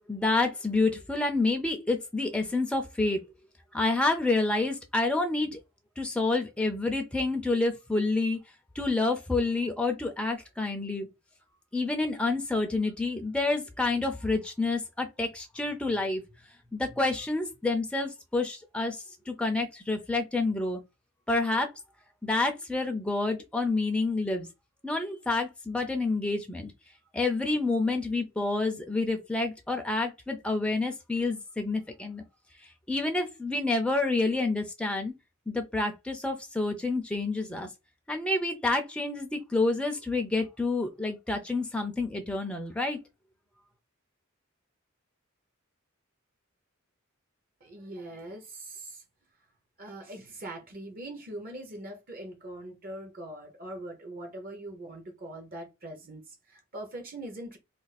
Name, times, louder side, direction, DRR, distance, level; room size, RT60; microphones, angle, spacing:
voice 1, 0.1-3.2 3.7-5.6 6.0-8.4 8.8-11.1 11.7-16.2 16.7-20.8 21.3-21.7 22.2-24.5 24.8-26.7 27.1-32.2 32.6-35.1 35.5-37.7 38.1-43.0, left 3 dB, 5° left, 0.4 m, -28 dB
voice 2, 47.6-49.0 49.8-57.6, right 1 dB, 40° right, 0.7 m, -42 dB
2.5 x 2.3 x 4.0 m
head